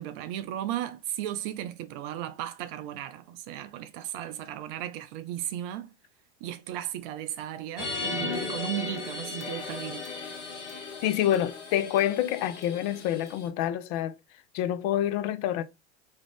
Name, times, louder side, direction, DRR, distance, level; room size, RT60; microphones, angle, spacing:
voice 1, 0.0-5.9 6.4-10.1, right 12 dB, 50° right, 0.4 m, -35 dB
sound 1, 7.8-13.5, left 4 dB, 85° left, 1.0 m, -36 dB
voice 2, 11.0-14.1 14.5-15.6, left 11 dB, 50° left, 0.5 m, -27 dB
2.6 x 2.3 x 3.4 m
hypercardioid pair, 90°, 34 cm